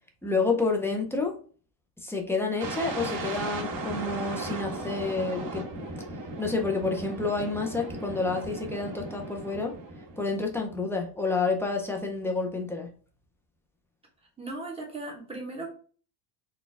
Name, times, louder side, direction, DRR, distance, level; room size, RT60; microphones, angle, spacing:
voice 1, 0.2-1.3 2.0-5.9 6.4-9.7 10.2-12.9, left 3 dB, 5° left, 2 dB, 0.4 m, -29 dB
sound 1, 2.6-10.5, right 2 dB, 45° right, 1.7 m, -36 dB
voice 2, 14.4-15.7, right 2 dB, 10° right, -1 dB, 1.2 m, -37 dB
4.2 x 2.2 x 3.3 m, 0.41 s
supercardioid pair, 125°, 46 cm